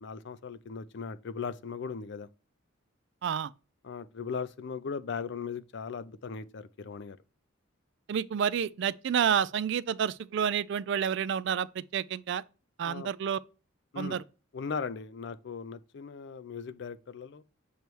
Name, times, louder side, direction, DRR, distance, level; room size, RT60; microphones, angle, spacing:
voice 1, 0.0-2.3 3.8-7.2 12.8-13.1 13.9-14.2 14.5-17.4, left 5 dB, 55° left, 0.4 m, -38 dB
voice 2, 8.1-12.4 12.8-13.4 14.0-14.2, right 8 dB, 55° right, 0.3 m, -29 dB
6.7 x 3.1 x 4.5 m
head